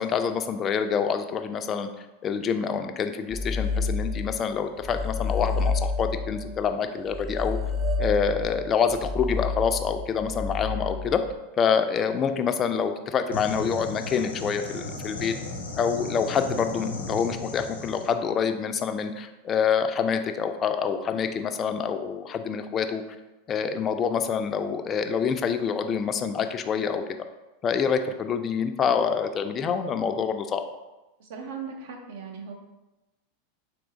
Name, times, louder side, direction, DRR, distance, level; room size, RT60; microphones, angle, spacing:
voice 1, 0.0-1.9 2.2-7.6 8.0-11.2 11.6-15.3 15.8-23.0 23.5-27.0 27.6-30.6, left 6 dB, 30° left, 8 dB, 0.4 m, -26 dB
sound 1, 3.3-4.5 4.8-11.3, left 3 dB, 20° right, 0.9 m, -30 dB
sound 2, 13.3-18.1, left 2 dB, 85° left, 0.7 m, -36 dB
voice 2, 31.2-32.5, right 6 dB, 65° right, 2 dB, 0.7 m, -38 dB
3.5 x 3.0 x 3.9 m, 1.0 s
hypercardioid pair, 95°, 0 cm